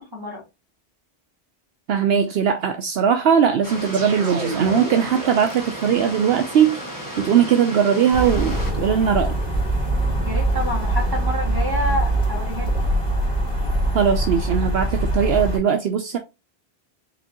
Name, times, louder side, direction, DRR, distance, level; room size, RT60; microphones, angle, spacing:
voice 1, 0.1-0.4 10.2-12.7, left 1 dB, 20° right, 2.2 m, -28 dB
voice 2, 1.9-6.8 7.2-9.4 13.9-16.2, right 8 dB, 70° right, 0.8 m, -19 dB
sound 1, 3.6-8.7, equal, 20° left, 1.4 m, -34 dB
sound 2, 3.9-6.2, right 2 dB, 90° right, 1.3 m, -32 dB
sound 3, 8.1-15.6, right 1 dB, 55° right, 2.4 m, -23 dB
5.1 x 3.5 x 2.9 m
omnidirectional pair, 1.1 m